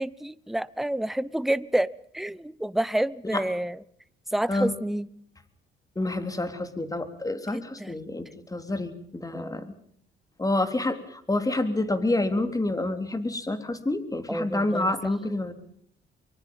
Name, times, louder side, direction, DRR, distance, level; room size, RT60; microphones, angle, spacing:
voice 1, 0.0-1.9 2.1-3.8 4.3-5.1 7.5-8.0 9.3-9.7 14.3-14.9, right 1 dB, ahead, 18 dB, 0.8 m, -29 dB
voice 2, 5.9-9.7 10.4-15.5, left 2 dB, 15° left, 9 dB, 3.4 m, -28 dB
24.5 x 24.0 x 5.5 m, 0.65 s
cardioid pair, 90°, 20 cm